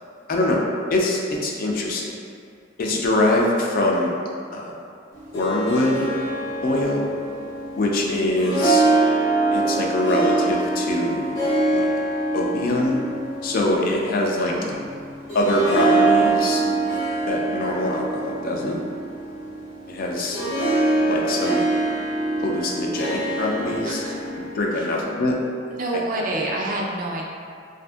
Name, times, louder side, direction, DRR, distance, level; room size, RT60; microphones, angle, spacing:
voice 1, 0.9-2.0 2.8-4.1 4.5-4.7 5.3-6.1 6.6-7.0 7.7-8.8 9.5-11.4 11.7-11.9 12.3-13.0 13.4-14.5 15.3-16.6 17.3-18.8 19.9-20.4 21.1-21.6 22.4-24.0 24.3-25.4 25.9-26.0, left 1 dB, 50° left, -1 dB, 0.3 m, -23 dB
Harp, 5.1-25.0, right 2 dB, 65° left, 0.8 m, -24 dB
voice 2, 14.5-14.9 20.2-20.3 23.8-24.4 24.7-24.9 25.7-27.2, right 1 dB, 45° right, -2 dB, 0.3 m, -29 dB
2.5 x 2.5 x 2.3 m, 2.3 s
head